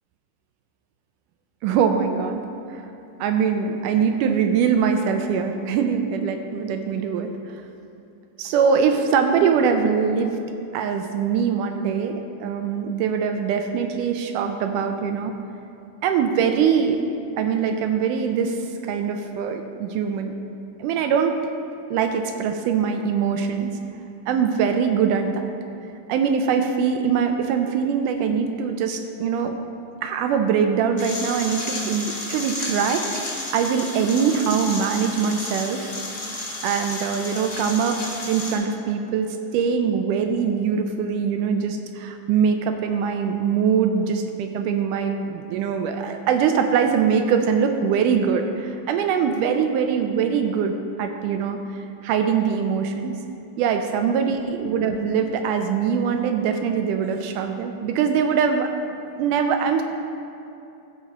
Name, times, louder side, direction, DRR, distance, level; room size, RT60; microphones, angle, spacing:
voice 1, 1.6-2.4 2.7-2.8 3.2-7.3 8.4-10.4 10.7-15.3 16.0-20.3 20.8-21.4 21.9-23.7 24.3-25.4 26.1-29.6 30.0-33.0 33.5-35.9 36.6-38.0 38.3-53.2 53.6-58.7 59.2-59.8, right 6 dB, 80° right, 5 dB, 1.9 m, -22 dB
sound 1, 31.0-38.5, left 2 dB, 55° left, 0.8 m, -32 dB
14.5 x 6.1 x 4.1 m, 2.8 s
omnidirectional pair, 4.1 m